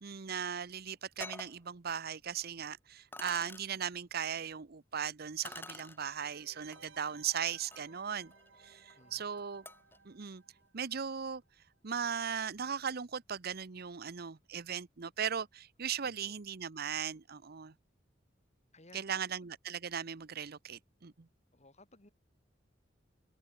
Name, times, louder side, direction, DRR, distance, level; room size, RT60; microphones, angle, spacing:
voice 1, 0.0-8.3 8.6-9.6 10.0-10.4 10.7-11.4 11.8-17.7 18.9-21.3, right 8 dB, 55° right, 0.8 m, -38 dB
sound 1, 0.6-0.7 1.2-1.6 2.4-2.5 3.1-3.6 5.4-6.0 6.7-6.9 7.4-10.0, left 2 dB, 10° left, 2.2 m, -49 dB
sound 2, 6.0-11.5 11.7-11.8, right 4 dB, 75° right, 4.1 m, -61 dB
voice 2, 8.9-9.4 16.0-16.3 18.7-19.5 21.5-22.1, left 2 dB, 35° left, 5.9 m, -60 dB
head